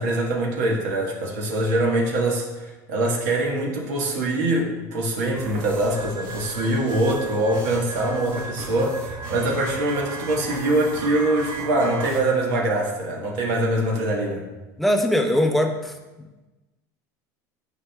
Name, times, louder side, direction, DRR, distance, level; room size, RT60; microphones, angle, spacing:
voice 1, 0.0-14.4, right 1 dB, 80° right, -2 dB, 1.3 m, -23 dB
sound 1, 5.3-12.2, right 2 dB, 60° right, 1.5 m, -36 dB
sound 2, 5.9-12.4, right 1 dB, 40° right, 0.8 m, -40 dB
voice 2, 14.8-15.9, left 1 dB, ahead, 3 dB, 0.7 m, -21 dB
9.4 x 4.8 x 2.3 m, 1.1 s
supercardioid pair, 110°, 10 cm